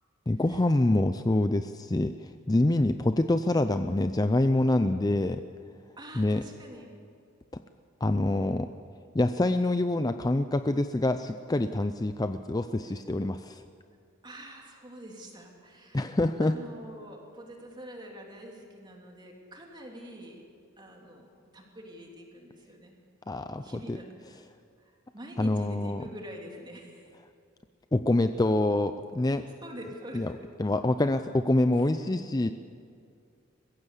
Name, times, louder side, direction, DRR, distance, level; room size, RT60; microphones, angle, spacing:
voice 1, 0.3-5.4 6.2-6.4 8.0-8.7 9.1-13.6 15.9-16.5 23.3-23.6 23.9-24.0 25.4-26.0 27.9-29.4 30.1-30.3 30.6-32.5, left 2 dB, 20° left, 9 dB, 0.5 m, -26 dB
voice 2, 6.0-7.0 12.8-13.0 14.2-20.4 20.8-21.3 21.5-22.9 23.6-24.5 24.8-27.1 29.6-30.5 31.8-32.0, equal, 20° right, 0 dB, 3.2 m, -46 dB
22.5 x 15.5 x 8.3 m, 2.3 s
head